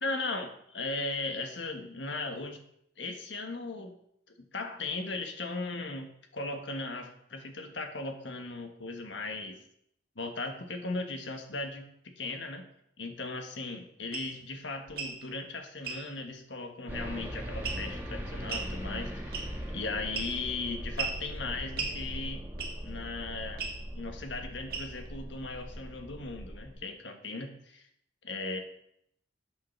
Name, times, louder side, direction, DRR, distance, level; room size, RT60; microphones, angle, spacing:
voice 1, 0.0-2.6 3.0-4.0 4.4-9.6 10.1-12.6 13.0-19.4 19.7-22.4 22.8-23.7 23.9-27.8 28.2-28.6, left 3 dB, 85° left, 5 dB, 1.5 m, -37 dB
sound 1, 14.1-14.3 14.9-15.2 15.8-16.0 17.6-18.0 18.5-18.7 19.3-19.7 20.1-20.5 21.0-21.2 21.8-22.0 22.6-22.9 23.6-23.8 24.7-25.1, right 5 dB, 50° right, 1.9 m, -35 dB
sound 2, 16.9-26.7, equal, 10° right, 1.7 m, -40 dB
8.5 x 6.8 x 6.0 m, 0.71 s
head